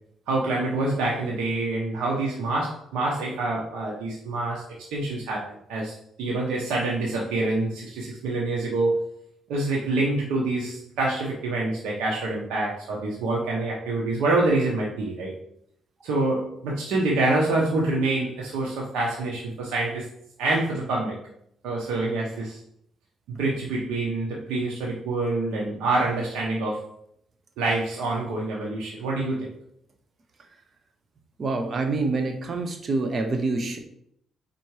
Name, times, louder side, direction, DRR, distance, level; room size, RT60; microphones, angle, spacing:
voice 1, 0.3-4.6 4.9-9.0 9.5-15.3 16.0-20.1 20.4-21.2 21.6-22.6 23.3-26.8 27.6-29.5, right 2 dB, 90° right, -3 dB, 1.1 m, -26 dB
voice 2, 31.4-33.8, right 3 dB, 45° right, 5 dB, 1.1 m, -26 dB
4.5 x 4.3 x 4.8 m, 0.71 s
cardioid pair, 90°, 0 cm